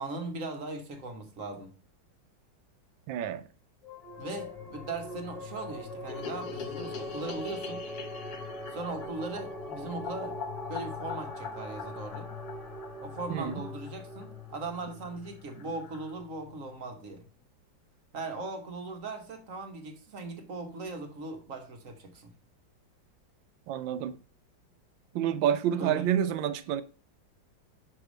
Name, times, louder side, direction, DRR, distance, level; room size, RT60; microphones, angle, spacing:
voice 1, 0.0-1.7 4.2-7.8 8.7-10.4 10.7-12.3 13.0-17.2 18.1-22.3 25.8-26.1, right 3 dB, 50° right, 1.3 m, -39 dB
voice 2, 3.1-3.4 13.3-13.6 23.7-24.2 25.1-26.8, right 10 dB, 85° right, 1.4 m, -28 dB
sound 1, 3.8-16.7, left 1 dB, ahead, 1.4 m, -43 dB
sound 2, 6.1-14.3 14.6-14.7 14.9-15.0 15.3-15.4 15.6-16.1, left 5 dB, 60° left, 1.3 m, -42 dB
6.2 x 4.8 x 5.0 m
omnidirectional pair, 2.0 m